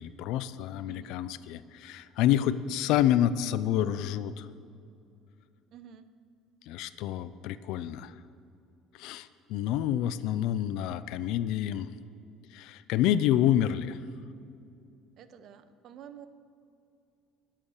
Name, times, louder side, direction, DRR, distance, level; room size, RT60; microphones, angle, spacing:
voice 1, 0.0-4.5 6.7-8.2 8.9-11.9 12.5-14.0, left 11 dB, 75° left, 14 dB, 0.6 m, -28 dB
voice 2, 0.9-1.2 5.7-6.1 15.2-16.3, right 9 dB, 55° right, 11 dB, 0.9 m, -49 dB
20.5 x 7.6 x 6.5 m, 2.6 s
cardioid pair, 115°, 0 cm